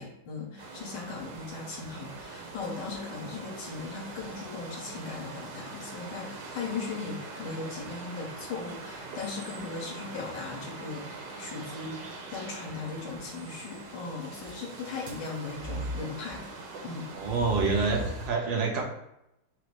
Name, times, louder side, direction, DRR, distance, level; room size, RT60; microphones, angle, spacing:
voice 1, 0.0-16.4 16.8-17.1, left 4 dB, 65° left, -2 dB, 1.6 m, -38 dB
sound 1, 0.6-18.3, right 2 dB, 70° right, 1.4 m, -41 dB
voice 2, 17.1-18.8, right 4 dB, 90° right, 0 dB, 1.7 m, -27 dB
5.5 x 2.0 x 4.7 m, 0.85 s
omnidirectional pair, 2.1 m